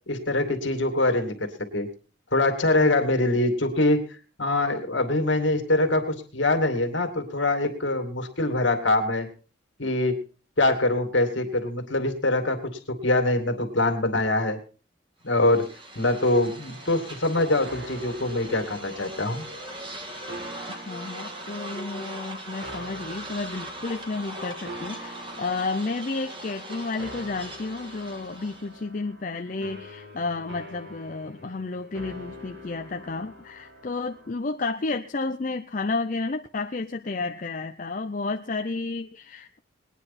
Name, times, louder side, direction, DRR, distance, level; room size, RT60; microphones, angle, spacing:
voice 1, 0.1-1.9 2.3-4.0 4.4-9.3 9.8-10.2 10.6-14.6 15.2-15.7 16.0-19.4, left 2 dB, 70° left, 5 dB, 2.4 m, -24 dB
sound 1, 15.3-28.8, right 1 dB, 25° right, 2.0 m, -40 dB
sound 2, 16.4-34.3, equal, 75° right, 3.5 m, -45 dB
voice 2, 20.7-39.6, left 3 dB, 40° left, 5 dB, 0.6 m, -31 dB
20.5 x 9.9 x 4.2 m, 0.38 s
head